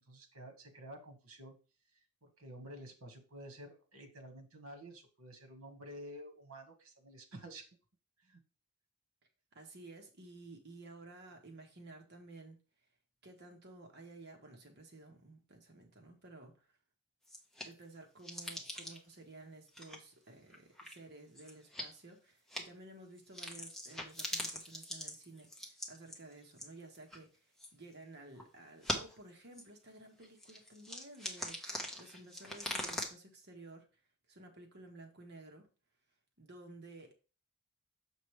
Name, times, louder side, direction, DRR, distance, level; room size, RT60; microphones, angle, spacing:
voice 1, 0.0-1.6 2.2-7.7 8.3-8.4, right 1 dB, 75° right, 6 dB, 1.6 m, -51 dB
voice 2, 9.5-12.6 13.2-16.7 17.6-33.9 34.3-35.7 36.4-37.1, right 2 dB, 50° right, 3 dB, 1.3 m, -54 dB
sound 1, 17.2-17.8 18.2-19.1 19.7-20.0 20.5-21.0 21.4-21.9 22.5-22.6 23.2-27.2 27.6-27.9 28.4-28.5 28.8-29.2 29.6-29.7 30.2-33.1, left 1 dB, ahead, 1.1 m, -42 dB
7.1 x 5.2 x 3.2 m, 0.33 s
head